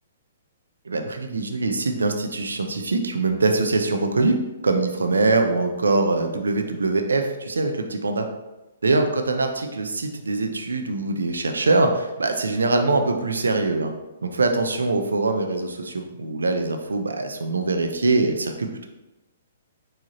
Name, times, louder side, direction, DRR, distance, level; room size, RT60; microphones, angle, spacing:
voice 1, 0.9-4.4 4.6-8.3 8.8-13.9 14.2-18.9, right 3 dB, 85° right, 5 dB, 0.5 m, -23 dB
4.7 x 2.8 x 2.9 m, 1.0 s
hypercardioid pair, 130°, 0 cm